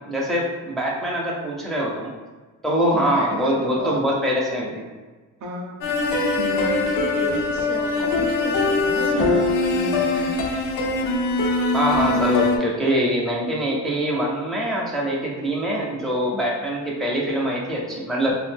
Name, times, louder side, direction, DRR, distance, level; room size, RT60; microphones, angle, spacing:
voice 1, 0.1-2.1 2.6-4.8 11.7-18.4, equal, ahead, -4 dB, 0.5 m, -23 dB
voice 2, 2.9-4.0 5.4-5.8 6.4-10.3, right 1 dB, 65° right, 0 dB, 0.5 m, -32 dB
sound 1, 5.8-12.6, left 3 dB, 70° left, 0.5 m, -22 dB
2.4 x 2.0 x 3.3 m, 1.3 s
cardioid pair, 105°, 32 cm